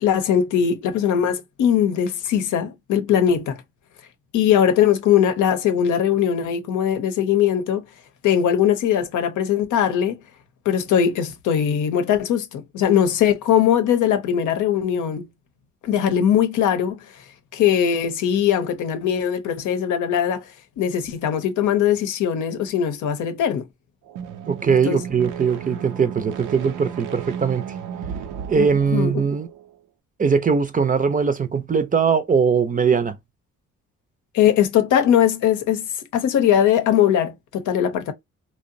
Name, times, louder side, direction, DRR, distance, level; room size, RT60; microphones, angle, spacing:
voice 1, 0.0-3.6 4.3-7.8 8.2-10.2 10.7-15.3 15.8-17.0 17.5-20.5 20.8-23.6 24.7-25.0 28.6-28.7 28.9-29.1 34.3-38.1, left 9 dB, 80° left, 0.7 m, -20 dB
sound 1, 24.1-29.7, right 8 dB, 85° right, 0.6 m, -34 dB
voice 2, 24.5-27.6 28.5-29.5 30.2-33.2, right 6 dB, 25° right, 0.5 m, -20 dB
2.8 x 2.1 x 2.5 m
cardioid pair, 90°, 30 cm